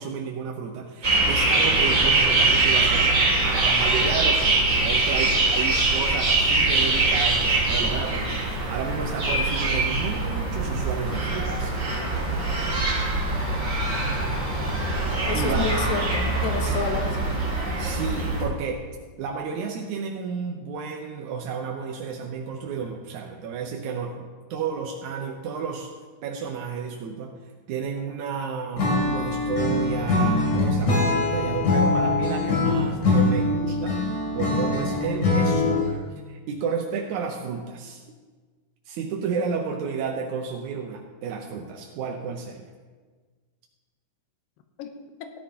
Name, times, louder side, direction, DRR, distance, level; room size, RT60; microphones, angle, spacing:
voice 1, 0.0-3.2 3.4-11.7 15.3-15.7 16.6-16.7 17.8-18.8 19.2-25.9 26.2-27.3 27.7-34.0 34.3-35.9 36.3-38.0 38.9-42.7, right 6 dB, 80° right, 1 dB, 1.7 m, -31 dB
sound 1, 1.0-18.4, right 2 dB, 25° right, 2.4 m, -23 dB
voice 2, 15.3-17.2 44.8-44.9, left 6 dB, 75° left, 6 dB, 2.4 m, -29 dB
Acoustic guitar / Strum, 28.8-36.0, left 2 dB, 55° left, 3.8 m, -23 dB
16.0 x 11.5 x 2.9 m, 1.4 s
omnidirectional pair, 4.4 m